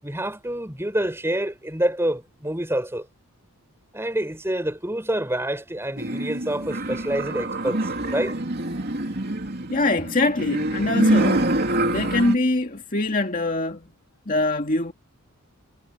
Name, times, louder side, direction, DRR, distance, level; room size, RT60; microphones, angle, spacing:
voice 1, 0.0-3.1 3.9-8.4, right 1 dB, 10° right, 5.9 m, -27 dB
sound 1, 6.0-12.4, right 1 dB, 45° right, 2.9 m, -25 dB
voice 2, 9.7-11.5 11.9-13.9 14.3-14.9, left 2 dB, 35° left, 2.1 m, -23 dB
head